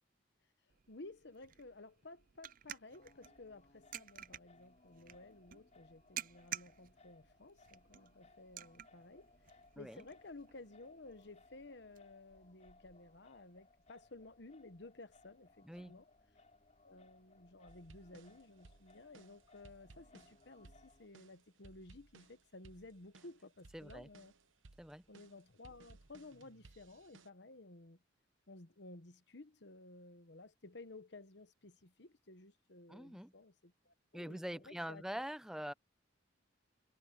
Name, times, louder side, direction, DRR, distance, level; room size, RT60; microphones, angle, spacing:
sound 1, 0.7-12.0, right 11 dB, 45° right, 0.5 m, -52 dB
voice 1, 0.9-16.1 16.8-24.3 25.1-28.0 28.5-35.3, left 2 dB, 60° left, 1.3 m, -55 dB
Singing, 2.9-21.1, left 3 dB, 35° left, 6.9 m, -66 dB
voice 2, 15.6-16.0 23.7-24.1 24.8-25.0 32.9-33.3 34.1-35.7, equal, 5° right, 0.6 m, -44 dB
sound 2, 17.7-27.3, right 3 dB, 80° right, 1.0 m, -62 dB
head